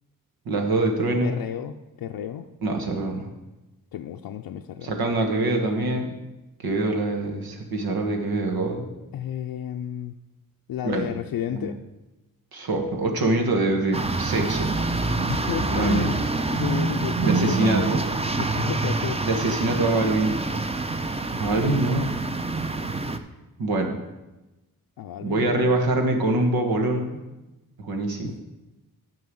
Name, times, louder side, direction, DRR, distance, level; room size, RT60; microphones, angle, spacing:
voice 1, 0.4-1.3 2.6-3.3 4.8-6.1 6.6-8.8 10.8-11.1 11.5-11.7 12.5-14.7 15.7-16.1 17.3-18.0 19.2-20.4 21.4-22.2 23.6-23.9 25.2-27.2 27.8-28.3, right 2 dB, 90° right, 3 dB, 1.5 m, -24 dB
voice 2, 1.2-2.5 3.0-3.2 3.9-4.9 9.1-10.1 10.7-11.8 15.3-16.2 16.5-18.0 18.3-19.2 25.0-25.7 28.2-28.4, left 10 dB, 85° left, 3 dB, 0.5 m, -32 dB
sound 1, 13.9-23.2, right 3 dB, 15° right, 0.6 m, -26 dB
9.5 x 4.7 x 7.6 m, 1.0 s
cardioid pair, 70°, 35 cm